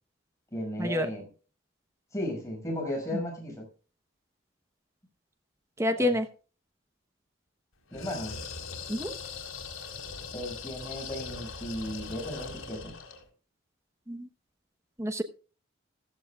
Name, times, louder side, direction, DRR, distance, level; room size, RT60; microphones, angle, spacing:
voice 1, 0.5-1.3 2.1-3.6 6.0-6.1 7.9-8.4 10.3-13.0, left 1 dB, 15° left, 6.1 m, -35 dB
voice 2, 5.8-6.3 8.9-9.2 14.1-14.3 15.0-15.2, left 1 dB, 15° right, 1.0 m, -28 dB
sound 1, 7.9-13.3, left 5 dB, 80° left, 4.0 m, -40 dB
15.5 x 14.5 x 2.4 m
head